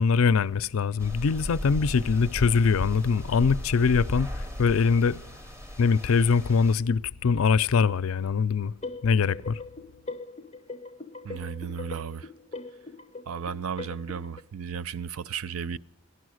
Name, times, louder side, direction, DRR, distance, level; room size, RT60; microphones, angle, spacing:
voice 1, 0.0-5.2 5.8-8.7 9.0-9.6, left 5 dB, 75° left, 0.4 m, -23 dB
sound 1, 1.0-6.7, left 1 dB, 15° right, 0.7 m, -36 dB
Bowed string instrument, 2.0-5.6, left 4 dB, 60° right, 2.4 m, -55 dB
sound 2, 8.6-14.4, left 3 dB, 30° left, 0.5 m, -41 dB
voice 2, 11.2-12.3 13.3-15.8, right 7 dB, 80° right, 0.5 m, -34 dB
16.5 x 11.5 x 6.3 m
head